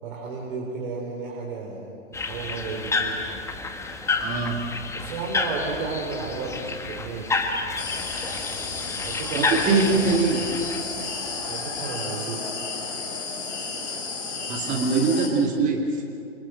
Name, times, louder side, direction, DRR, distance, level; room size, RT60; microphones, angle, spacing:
voice 1, 0.0-3.2 4.9-7.5 9.0-10.1 11.5-12.5, right 4 dB, 45° right, -2 dB, 4.9 m, -33 dB
sound 1, 2.1-11.8, left 3 dB, 5° left, 1.5 m, -30 dB
voice 2, 4.2-4.7 9.3-10.6 14.5-16.0, right 4 dB, 20° right, 1 dB, 2.5 m, -23 dB
sound 2, 7.8-15.3, left 4 dB, 60° left, 6.3 m, -32 dB
29.0 x 27.0 x 6.5 m, 2.6 s
figure-of-eight pair, 125°, 39 cm